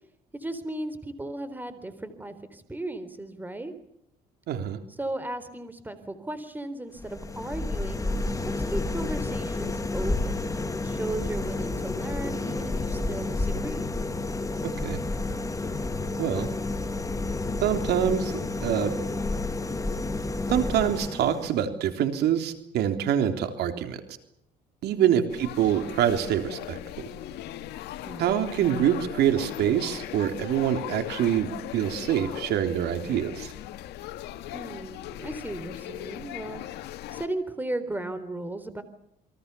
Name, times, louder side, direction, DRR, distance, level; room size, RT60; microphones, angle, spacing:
voice 1, 0.3-3.7 5.0-8.1 8.7-13.9 24.8-25.1 28.0-28.3 34.5-36.6 37.1-38.8, right 1 dB, 10° right, 12 dB, 3.9 m, -36 dB
voice 2, 4.5-4.8 14.6-15.0 16.2-16.5 17.6-18.3 18.6-18.9 20.5-24.0 24.8-26.8 28.2-33.5, right 10 dB, 75° right, 7 dB, 3.5 m, -25 dB
sound 1, 7.0-21.6, left 2 dB, 20° left, 2.4 m, -30 dB
sound 2, 25.3-37.3, left 13 dB, 80° left, 1.9 m, -39 dB
28.5 x 23.5 x 7.0 m, 0.77 s
cardioid pair, 110°, 17 cm